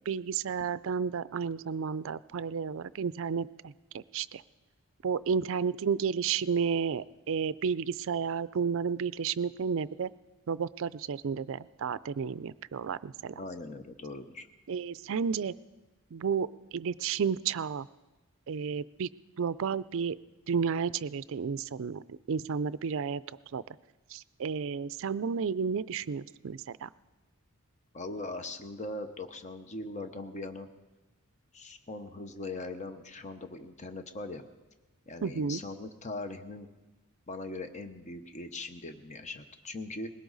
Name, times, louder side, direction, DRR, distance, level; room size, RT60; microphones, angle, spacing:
voice 1, 0.1-4.4 5.0-10.1 10.5-13.3 14.7-15.5 16.1-17.9 18.5-19.1 19.4-20.2 20.5-23.2 23.5-23.6 24.1-26.9 35.2-35.6, right 6 dB, 60° right, 17 dB, 0.4 m, -32 dB
voice 2, 13.3-14.5 27.9-30.7 31.5-34.4 35.1-36.7 37.3-40.1, left 2 dB, 30° left, 8 dB, 0.9 m, -40 dB
20.5 x 17.5 x 4.0 m, 1.1 s
head